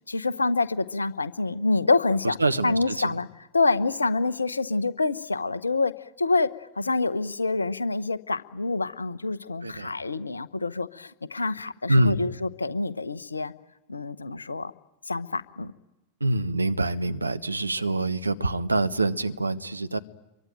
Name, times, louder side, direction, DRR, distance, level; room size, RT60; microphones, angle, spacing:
voice 1, 0.1-2.4 2.6-3.3 3.5-5.9 6.2-6.5 6.8-13.5 13.9-14.7 15.1-15.7, left 3 dB, 80° left, 0.9 m, -26 dB
voice 2, 2.2-3.2 9.6-10.0 11.9-12.3 16.2-20.0, right 2 dB, 80° right, 1.0 m, -25 dB
27.0 x 23.5 x 9.0 m
figure-of-eight pair, 90°, 0 cm